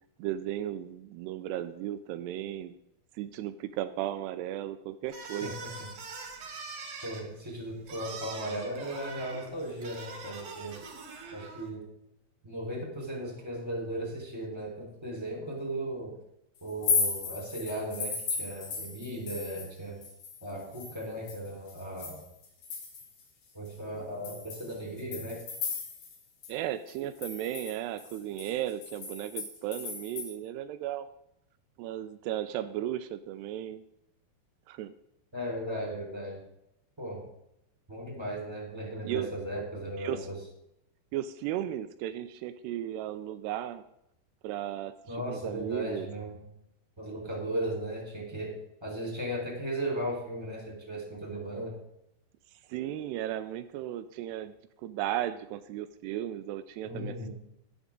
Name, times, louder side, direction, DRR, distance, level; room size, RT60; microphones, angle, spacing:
voice 1, 0.2-2.7 3.2-5.6 26.5-31.1 31.8-33.8 34.7-34.9 39.0-39.3 40.0-40.3 41.1-43.8 44.4-46.1 52.7-54.6 54.8-57.3, right 12 dB, 80° right, 11 dB, 2.6 m, -35 dB
sound 1, 5.1-11.7, right 4 dB, 50° right, 2.7 m, -43 dB
voice 2, 5.4-5.9 7.0-10.8 11.3-11.8 12.4-16.1 16.6-20.0 20.4-22.2 23.5-25.4 35.3-36.4 37.0-37.2 37.9-40.4 45.1-46.4 47.0-48.5 48.8-51.7 56.8-57.3, right 1 dB, 5° right, -1 dB, 3.5 m, -36 dB
sound 2, 16.7-19.8 20.0-23.2 23.7-23.8 24.2-26.2 26.4-26.5 26.9-30.3, left 5 dB, 60° left, 3.6 m, -35 dB
12.0 x 11.0 x 3.7 m, 0.80 s
omnidirectional pair, 5.0 m